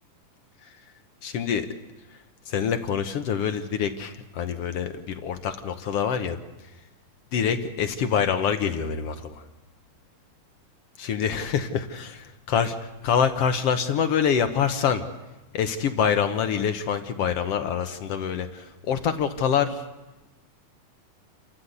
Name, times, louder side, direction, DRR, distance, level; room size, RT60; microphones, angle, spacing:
voice 1, 1.2-1.7 2.5-6.4 7.3-9.4 11.0-12.8 13.0-15.0 15.5-19.8, left 7 dB, 60° left, 8 dB, 1.8 m, -25 dB
29.0 x 14.0 x 8.0 m, 1.1 s
omnidirectional pair, 3.5 m